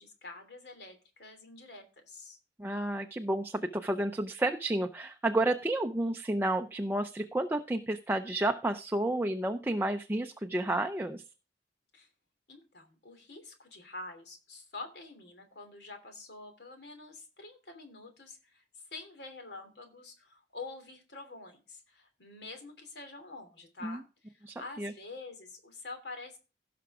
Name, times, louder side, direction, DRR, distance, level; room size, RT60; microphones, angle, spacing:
voice 1, 0.0-2.4 11.9-12.1 12.5-18.6 18.9-26.4, left 3 dB, 70° left, 6 dB, 3.0 m, -47 dB
voice 2, 2.6-11.2 23.8-24.0 24.4-24.9, right 1 dB, 10° right, 5 dB, 0.5 m, -31 dB
16.5 x 6.0 x 3.6 m, 0.33 s
head